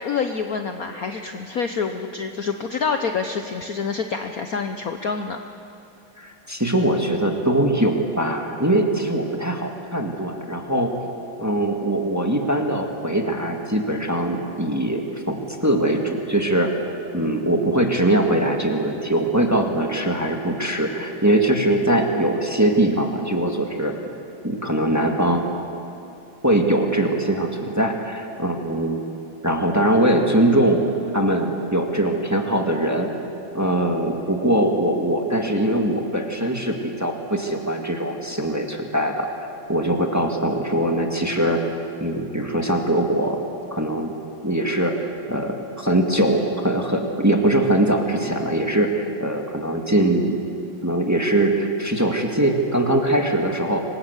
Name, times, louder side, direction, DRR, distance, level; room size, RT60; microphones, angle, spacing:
voice 1, 0.0-5.4, left 5 dB, 55° left, 6 dB, 1.1 m, -27 dB
voice 2, 6.2-10.9 11.4-15.0 15.3-16.7 17.1-23.9 24.4-25.4 26.4-29.0 29.4-30.8 31.1-33.1 33.5-39.3 39.7-41.6 42.0-43.4 43.7-44.1 44.4-50.4 50.8-53.8, right 1 dB, 10° right, 2 dB, 1.7 m, -21 dB
25.5 x 19.5 x 8.3 m, 2.7 s
omnidirectional pair, 2.3 m